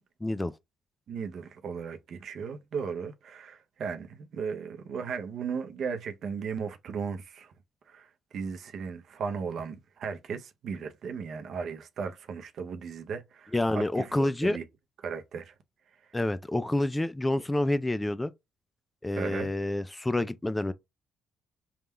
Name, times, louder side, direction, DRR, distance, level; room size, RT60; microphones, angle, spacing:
voice 1, 0.2-0.5 13.5-14.6 16.1-18.3 19.0-20.7, left 1 dB, 15° left, 0.3 m, -28 dB
voice 2, 1.1-7.5 7.9-14.6 15.0-15.5 19.2-19.5, right 6 dB, 65° right, 0.6 m, -36 dB
3.6 x 2.3 x 4.3 m
cardioid pair, 90°, 0 cm